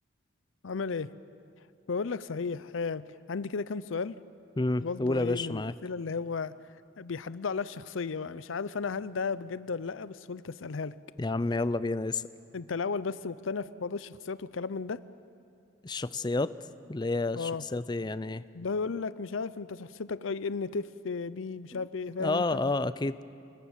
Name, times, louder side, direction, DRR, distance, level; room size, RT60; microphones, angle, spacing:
voice 1, 0.6-1.1 1.9-4.2 4.8-6.5 7.0-10.9 12.5-15.0 17.4-17.6 18.5-22.7, left 4 dB, 75° left, 16 dB, 0.6 m, -34 dB
voice 2, 4.6-5.7 11.2-12.2 15.8-16.5 16.9-18.4 21.7-21.8 22.2-23.2, left 2 dB, 20° left, 15 dB, 0.5 m, -30 dB
27.0 x 19.5 x 7.4 m, 2.5 s
head